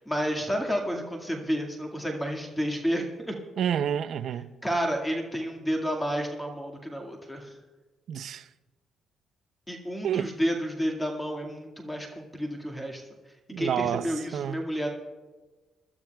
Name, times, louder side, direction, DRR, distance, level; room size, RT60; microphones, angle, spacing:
voice 1, 0.0-3.3 4.6-7.5 9.7-13.0 13.6-14.9, equal, 10° left, 1.9 m, -30 dB
voice 2, 3.6-4.5 8.1-8.5 10.0-10.3 13.5-14.6, right 9 dB, 70° right, 0.5 m, -29 dB
25.0 x 12.5 x 2.3 m
cardioid pair, 90°, 0 cm